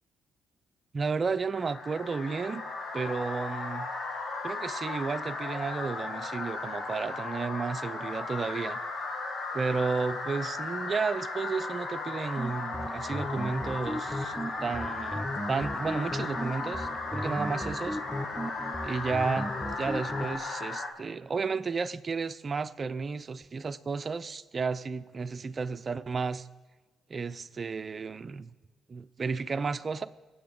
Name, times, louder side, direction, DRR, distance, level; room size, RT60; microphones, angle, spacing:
voice 1, 0.9-2.6 2.9-3.9 4.4-8.8 9.5-18.0 18.8-26.5 27.1-28.5 28.9-30.1, right 4 dB, 40° right, 0.7 m, -32 dB
sound 1, 1.5-20.9, left 3 dB, 55° left, 2.1 m, -36 dB
sound 2, 12.4-20.4, equal, ahead, 1.0 m, -37 dB
24.5 x 8.6 x 3.9 m
supercardioid pair, 65°, 0 cm